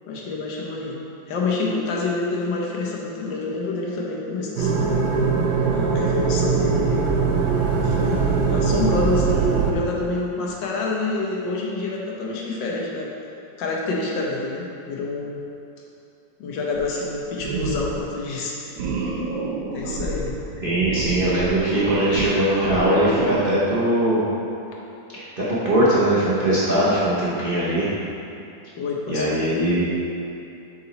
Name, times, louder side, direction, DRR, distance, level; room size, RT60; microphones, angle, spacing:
voice 1, 0.1-1.0 1.3-5.1 5.7-7.1 7.8-13.1 13.6-15.4 16.4-18.6 19.7-20.4 28.8-29.6, left 3 dB, 75° left, -2 dB, 1.5 m, -27 dB
sound 1, 4.6-9.7, right 5 dB, 65° right, 1.1 m, -21 dB
sound 2, 16.7-17.1 17.4-18.0 18.7-23.7, right 3 dB, 85° right, 1.5 m, -29 dB
voice 2, 20.6-24.2 25.1-27.9 29.1-29.8, right 1 dB, 40° right, -9 dB, 0.8 m, -21 dB
7.4 x 3.9 x 4.1 m, 2.8 s
omnidirectional pair, 2.1 m